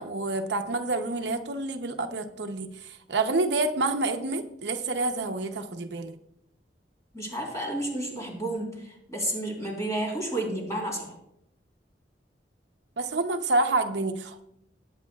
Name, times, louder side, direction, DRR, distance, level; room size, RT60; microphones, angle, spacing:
voice 1, 0.0-6.1 13.0-14.4, right 2 dB, 75° right, 6 dB, 0.8 m, -28 dB
voice 2, 7.1-11.1, right 1 dB, 20° left, -1 dB, 3.8 m, -31 dB
20.0 x 8.8 x 2.4 m, 0.77 s
head